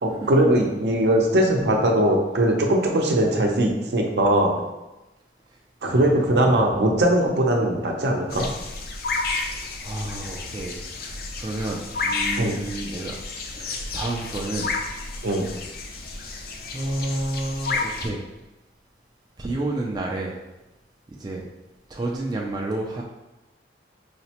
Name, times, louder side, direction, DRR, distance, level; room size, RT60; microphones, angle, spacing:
voice 1, 0.0-4.5 5.8-8.5 12.4-12.6 15.2-15.5, right 1 dB, 70° right, 1 dB, 0.6 m, -20 dB
voice 2, 5.8-6.6 9.3-13.2 13.5-14.7 16.2-18.3 19.4-20.4 21.1-21.5 21.9-23.0, right 2 dB, 25° right, -2 dB, 0.3 m, -31 dB
sound 1, 8.3-18.1, left 3 dB, 55° left, 0.4 m, -31 dB
4.9 x 2.1 x 2.8 m, 1.0 s
head